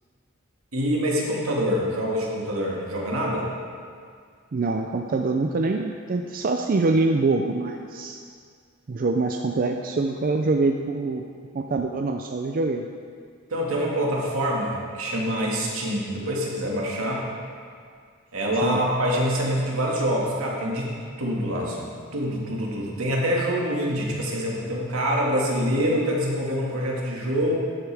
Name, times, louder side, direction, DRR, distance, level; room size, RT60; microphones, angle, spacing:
voice 1, 0.7-3.5 13.5-17.3 18.3-20.9 21.2-27.6, equal, 80° right, -3 dB, 2.0 m, -25 dB
voice 2, 4.5-8.2 8.9-11.2 11.5-12.9 18.6-18.8, right 3 dB, 45° right, 4 dB, 0.4 m, -24 dB
13.0 x 8.1 x 3.5 m, 2.1 s
head